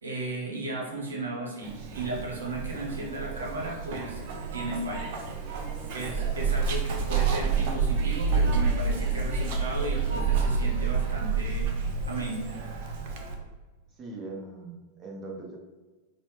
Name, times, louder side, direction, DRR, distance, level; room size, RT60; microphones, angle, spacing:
voice 1, 0.0-4.3 4.5-5.1 5.9-11.7 12.1-12.4, right 2 dB, 70° right, -2 dB, 0.9 m, -35 dB
Zipper (clothing), 1.6-13.4, right 5 dB, 50° right, 0.5 m, -29 dB
voice 2, 5.3-6.0 14.0-15.6, right 2 dB, 25° right, -1 dB, 0.9 m, -42 dB
4.1 x 2.1 x 3.2 m, 1.2 s
figure-of-eight pair, 90°, 0 cm